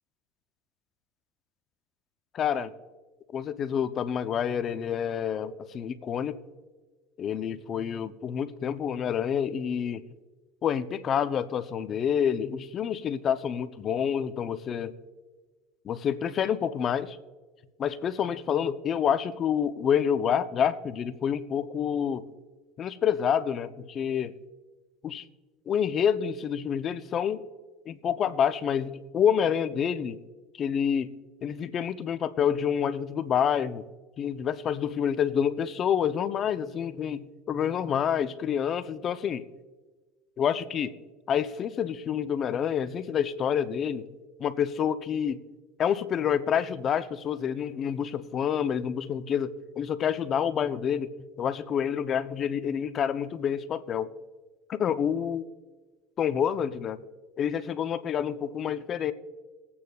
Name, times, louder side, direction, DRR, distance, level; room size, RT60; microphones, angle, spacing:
voice 1, 2.3-2.7 3.3-6.4 7.2-10.0 10.6-14.9 15.8-17.2 17.8-22.3 22.8-24.3 25.0-25.3 25.7-27.4 27.9-30.2 30.6-31.1 31.4-33.8 34.2-39.4 40.4-40.9 41.3-44.1 44.4-45.4 45.8-51.1 51.4-54.1 54.7-55.4 56.2-57.0 57.4-59.1, left 8 dB, 40° left, 13 dB, 0.5 m, -28 dB
19.5 x 8.5 x 2.3 m, 1.3 s
supercardioid pair, 105°, 0 cm